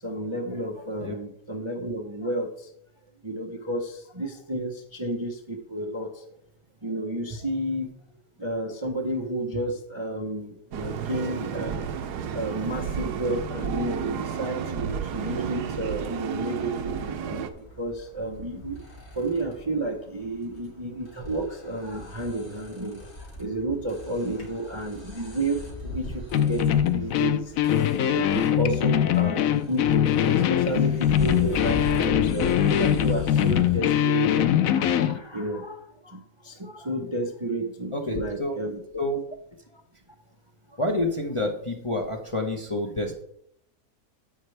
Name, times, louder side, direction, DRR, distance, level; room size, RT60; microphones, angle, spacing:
voice 1, 0.0-2.7 3.2-6.3 6.8-7.9 8.4-11.9 12.3-17.5 17.8-18.8 19.2-27.5 28.1-35.8 36.0-38.8, right 1 dB, 25° right, 3 dB, 0.7 m, -31 dB
sound 1, 10.7-17.5, right 7 dB, 85° right, 1.3 m, -32 dB
sound 2, 17.0-33.8, equal, 40° left, 2.8 m, -40 dB
sound 3, 26.3-35.2, left 10 dB, 70° left, 0.9 m, -22 dB
voice 2, 37.9-38.6 39.0-39.2 40.8-43.2, left 1 dB, 25° left, 1 dB, 0.8 m, -28 dB
10.5 x 8.0 x 3.3 m, 0.69 s
omnidirectional pair, 1.7 m